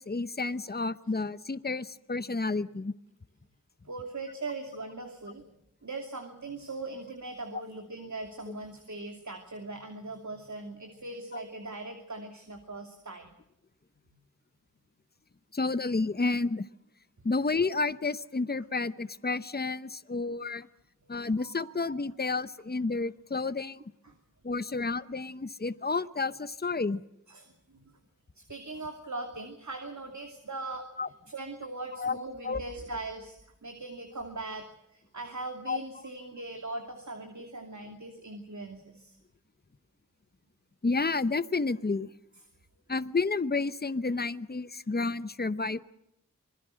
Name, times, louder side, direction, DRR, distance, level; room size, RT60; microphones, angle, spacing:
voice 1, 0.0-2.9 11.3-11.4 15.5-16.7 17.2-20.7 21.1-23.8 24.4-27.0 31.0-31.1 31.9-32.2 32.4-32.6 35.7-35.8 40.8-42.1 42.9-45.8, left 3 dB, 30° left, 15 dB, 0.9 m, -30 dB
voice 2, 3.9-5.4 5.8-13.3 21.0-22.1 24.0-24.1 27.3-27.9 28.3-30.9 31.3-39.2, right 2 dB, 60° right, 4 dB, 2.7 m, -40 dB
26.0 x 20.5 x 6.4 m, 0.86 s
wide cardioid pair, 50°, 33 cm